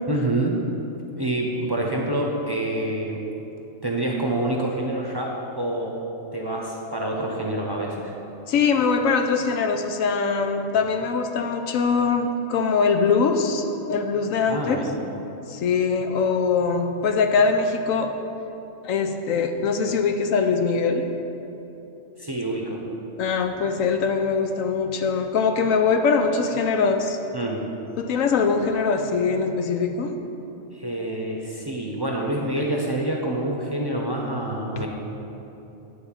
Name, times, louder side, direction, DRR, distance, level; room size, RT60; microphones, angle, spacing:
voice 1, 0.1-0.6 1.2-3.2 3.8-6.0 6.3-8.1 14.5-14.9 22.2-22.8 27.3-27.6 30.7-34.9, right 1 dB, 25° right, -1 dB, 0.7 m, -27 dB
voice 2, 8.5-14.8 15.5-18.1 18.8-21.0 23.2-27.2 28.0-30.1 34.8-34.9, left 5 dB, 90° left, 6 dB, 1.1 m, -22 dB
10.5 x 4.0 x 7.3 m, 3.0 s
omnidirectional pair, 1.3 m